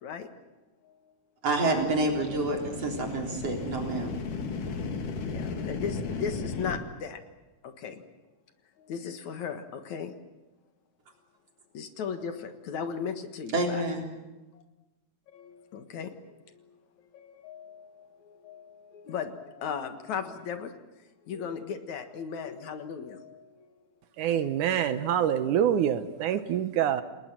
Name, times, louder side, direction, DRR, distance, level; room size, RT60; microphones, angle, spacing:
voice 1, 1.4-4.2 13.5-14.0, right 2 dB, 50° right, 1 dB, 4.8 m, -28 dB
sound 1, 1.6-6.8, left 4 dB, 85° left, 3.6 m, -35 dB
voice 2, 5.3-7.2 7.6-8.0 8.8-10.1 11.7-13.8 14.5-14.6 15.3-16.6 17.1-20.7 21.3-23.7 26.3-26.4 26.9-27.0, left 6 dB, 70° left, 7 dB, 2.8 m, -37 dB
voice 3, 24.2-27.0, right 9 dB, 80° right, 11 dB, 2.5 m, -26 dB
29.5 x 19.5 x 7.7 m, 1.1 s
omnidirectional pair, 3.6 m